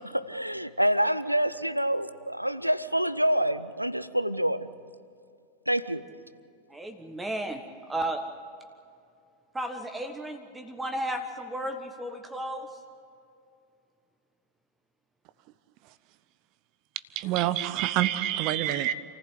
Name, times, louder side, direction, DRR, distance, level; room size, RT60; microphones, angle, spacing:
voice 1, 0.0-4.7 5.7-6.0, right 1 dB, 90° right, 16 dB, 0.6 m, -27 dB
voice 2, 6.7-7.6 7.9-8.2 9.5-12.7, right 1 dB, 10° right, 6 dB, 1.5 m, -33 dB
voice 3, 17.2-18.9, right 13 dB, 40° right, 16 dB, 0.8 m, -26 dB
28.0 x 15.0 x 8.3 m, 2.4 s
figure-of-eight pair, 90°, 0 cm